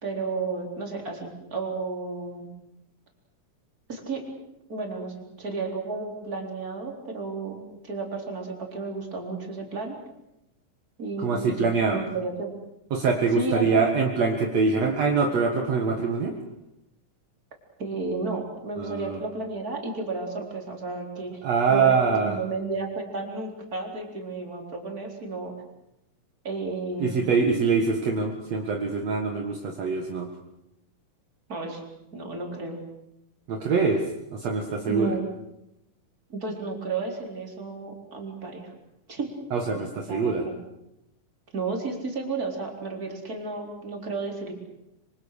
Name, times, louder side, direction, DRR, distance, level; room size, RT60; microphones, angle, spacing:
voice 1, 0.0-2.5 3.9-4.3 4.7-10.0 11.0-12.6 13.3-13.8 17.8-25.5 26.4-27.3 31.5-31.8 32.1-32.8 34.9-35.3 36.3-38.7 39.1-39.3 40.1-40.5 41.5-44.5, right 3 dB, 30° right, 1 dB, 4.4 m, -33 dB
voice 2, 11.2-12.0 12.9-16.3 18.8-19.2 21.4-22.4 27.0-30.3 33.5-34.1 34.3-35.1 39.5-40.5, right 4 dB, 60° right, 2 dB, 2.8 m, -24 dB
26.0 x 25.0 x 6.6 m, 0.88 s
omnidirectional pair, 3.5 m